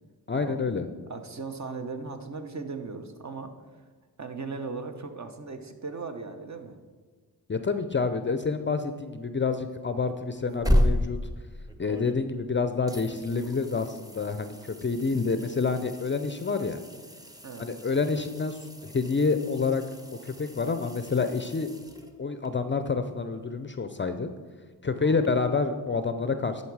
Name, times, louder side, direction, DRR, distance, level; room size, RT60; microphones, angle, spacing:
voice 1, 0.3-0.9 7.5-11.2 11.8-16.8 17.6-19.8 20.2-21.7 22.2-24.3 24.8-26.6, left 4 dB, 30° left, 9 dB, 0.5 m, -28 dB
voice 2, 1.1-3.5 4.2-6.8 17.4-17.7 25.0-25.4, right 4 dB, 40° right, 7 dB, 0.9 m, -38 dB
sound 1, 10.3-12.5 12.9-22.5 25.2-25.3, equal, 10° right, 0.8 m, -33 dB
10.5 x 4.1 x 4.7 m, 1.5 s
cardioid pair, 45°, 42 cm